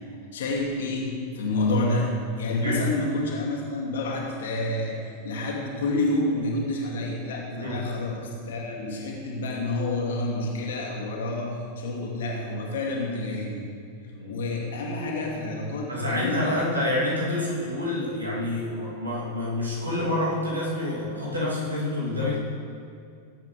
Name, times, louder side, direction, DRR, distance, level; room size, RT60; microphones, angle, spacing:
voice 1, 0.3-13.6 14.3-16.6, left 2 dB, 60° left, -2 dB, 2.4 m, -29 dB
voice 2, 2.4-2.8 7.5-7.9 14.1-14.4 15.9-22.4, left 1 dB, 80° right, -5 dB, 2.9 m, -28 dB
19.0 x 8.4 x 3.3 m, 2.3 s
figure-of-eight pair, 90°, 0 cm